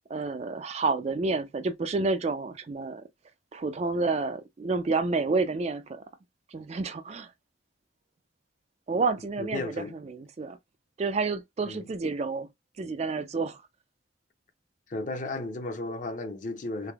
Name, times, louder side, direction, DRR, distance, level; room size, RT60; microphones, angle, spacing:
voice 1, 0.0-3.0 3.5-6.0 6.5-7.3 8.9-10.6 11.0-12.5 12.8-13.6, right 3 dB, 35° right, 0.3 m, -29 dB
voice 2, 9.4-9.9 11.6-11.9 14.9-16.9, left 2 dB, 40° left, 0.6 m, -34 dB
3.3 x 3.3 x 2.3 m
head